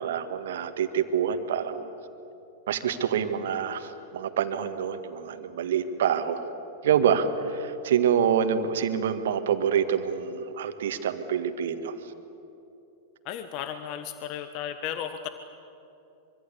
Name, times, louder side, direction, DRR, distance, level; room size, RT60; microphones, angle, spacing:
voice 1, 0.0-1.9 2.7-6.4 6.8-11.9, right 8 dB, 65° right, 9 dB, 1.9 m, -26 dB
voice 2, 13.2-15.3, left 9 dB, 45° left, 10 dB, 1.3 m, -34 dB
25.0 x 24.0 x 8.5 m, 2.9 s
figure-of-eight pair, 95°, 0 cm